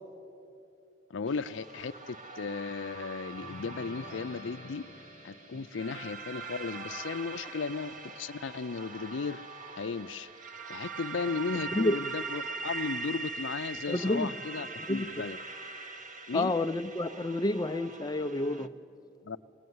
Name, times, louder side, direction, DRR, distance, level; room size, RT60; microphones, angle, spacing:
voice 1, 1.1-4.9 5.2-9.4 9.8-10.3 10.7-15.4 16.3-16.5 19.2-19.4, left 5 dB, 85° left, 10 dB, 0.5 m, -35 dB
sound 1, 1.3-18.7, right 4 dB, 45° right, 1.0 m, -42 dB
sound 2, 3.4-6.2, left 2 dB, 45° left, 1.1 m, -50 dB
voice 2, 13.9-14.3 14.9-15.1 16.3-18.7, left 1 dB, 20° left, 9 dB, 0.5 m, -29 dB
24.0 x 19.0 x 9.5 m, 2.9 s
head